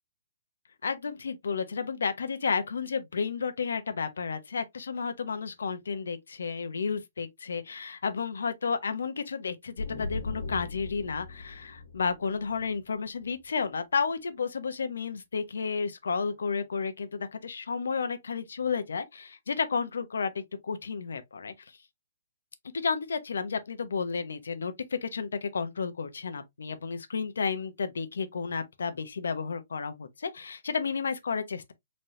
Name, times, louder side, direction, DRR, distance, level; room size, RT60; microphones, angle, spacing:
voice 1, 0.8-21.5 22.7-31.7, left 5 dB, 90° left, 1.0 m, -32 dB
sound 1, 9.8-13.4, left 3 dB, 65° left, 1.5 m, -39 dB
4.2 x 3.5 x 2.6 m
hypercardioid pair, 165°, 0 cm